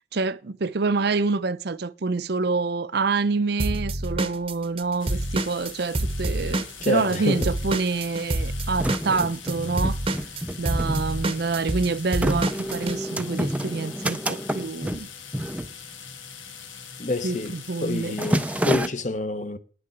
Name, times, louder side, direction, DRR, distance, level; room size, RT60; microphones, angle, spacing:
voice 1, 0.1-10.0 10.6-15.1 17.2-17.4 17.7-18.2, right 4 dB, 55° right, 0.5 m, -27 dB
Drum kit / Drum, 3.6-7.2 7.4-13.0, right 1 dB, 30° right, 0.8 m, -27 dB
sound 1, 5.0-18.7, left 8 dB, 85° left, 1.4 m, -43 dB
sound 2, 6.4-6.5 6.6-7.5 8.1-16.4 16.7-17.0 17.3-17.6 17.9-18.9, right 1 dB, 5° right, 0.4 m, -29 dB
voice 2, 6.8-7.5 17.0-19.6, left 2 dB, 40° left, 0.8 m, -27 dB
9.5 x 6.6 x 8.0 m
head